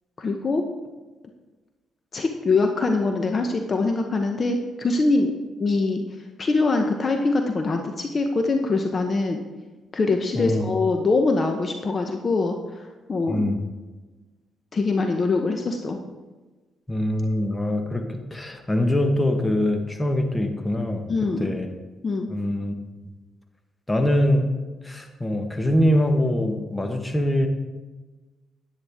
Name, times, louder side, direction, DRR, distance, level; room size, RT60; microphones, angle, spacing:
voice 1, 0.2-0.7 2.1-6.0 6.4-9.4 9.9-13.4 14.7-16.0 21.1-21.5 22.0-22.3, left 3 dB, 40° left, 4 dB, 0.9 m, -23 dB
voice 2, 10.3-10.7 13.3-13.6 16.9-21.0 21.4-21.7 22.3-22.7 23.9-24.5 24.8-27.5, left 1 dB, 15° left, 5 dB, 1.2 m, -23 dB
9.9 x 9.7 x 3.6 m, 1.2 s
cardioid pair, 90°, 0 cm